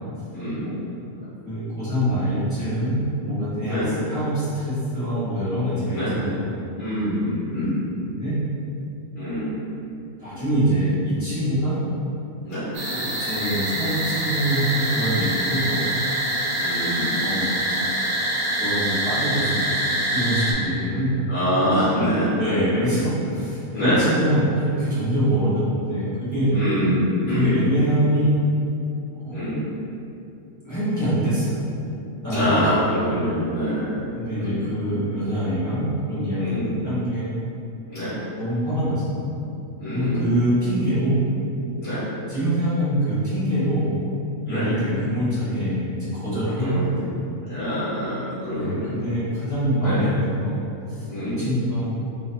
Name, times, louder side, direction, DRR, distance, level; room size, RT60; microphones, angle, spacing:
voice 1, 0.3-0.7 3.7-3.9 5.9-6.1 6.8-7.7 9.1-9.5 12.4-12.7 16.5-17.1 21.3-22.3 23.7-24.1 26.5-27.5 29.3-29.6 32.3-34.1 34.4-34.6 36.4-36.8 37.9-38.2 39.8-40.3 41.8-42.1 44.5-44.7 46.6-47.1 47.5-49.0 49.8-50.0 51.1-51.4, equal, 85° left, -13 dB, 1.7 m, -25 dB
voice 2, 1.4-6.5 7.5-7.8 8.1-8.3 10.2-11.8 12.8-15.8 17.2-17.8 18.6-19.8 20.1-21.2 22.4-26.5 27.3-28.4 29.1-29.4 30.6-31.6 32.2-32.6 34.1-37.3 38.1-39.1 39.8-41.2 42.3-43.9 44.4-47.1 48.5-50.6 50.9-51.1 51.4-51.9, equal, 15° left, -15 dB, 1.3 m, -24 dB
sound 1, 12.7-20.5, right 1 dB, 90° right, 1.3 m, -25 dB
3.9 x 3.0 x 2.7 m, 2.8 s
omnidirectional pair, 1.5 m